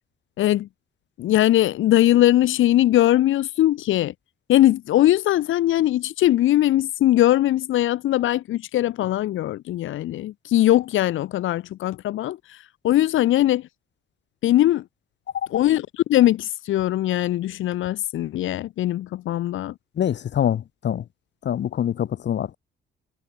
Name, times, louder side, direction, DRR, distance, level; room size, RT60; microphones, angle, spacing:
voice 1, 0.4-0.7 1.2-4.1 4.5-12.6 12.8-13.6 14.4-14.8 15.5-19.7, left 14 dB, 80° left, 2.1 m, -20 dB
voice 2, 20.0-21.0 21.5-22.6, left 10 dB, 65° left, 3.5 m, -24 dB
cardioid pair, 90°, 20 cm